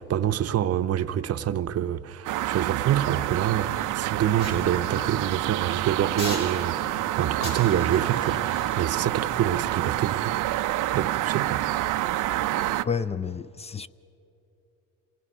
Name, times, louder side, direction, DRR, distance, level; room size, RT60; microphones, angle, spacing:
voice 1, 0.0-11.7, right 10 dB, 55° right, 0.7 m, -27 dB
sound 1, 2.3-12.8, right 15 dB, 90° right, 0.6 m, -28 dB
sound 2, 4.4-5.4 6.2-7.0 7.4-10.6 11.2-11.4, left 2 dB, 85° left, 5.8 m, -41 dB
voice 2, 4.8-5.1 12.8-13.9, left 6 dB, 20° left, 0.4 m, -31 dB
27.0 x 19.5 x 5.5 m
cardioid pair, 90°, 30 cm